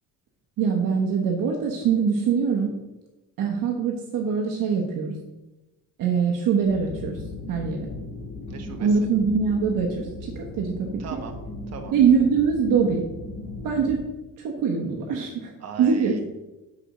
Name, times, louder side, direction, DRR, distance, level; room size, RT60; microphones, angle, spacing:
voice 1, 0.6-2.7 3.4-5.1 6.0-7.2 7.5-7.8 8.8-11.2 11.9-13.0 13.6-14.0 14.4-15.5 15.8-16.1, right 6 dB, 65° right, 0 dB, 1.1 m, -23 dB
sound 1, 6.6-14.0, left 2 dB, 20° left, 1.8 m, -37 dB
voice 2, 8.5-9.1 11.0-11.4 11.7-12.0 15.6-16.2, right 6 dB, 45° right, 4 dB, 1.1 m, -38 dB
5.3 x 5.0 x 6.4 m, 1.0 s
cardioid pair, 135°, 35 cm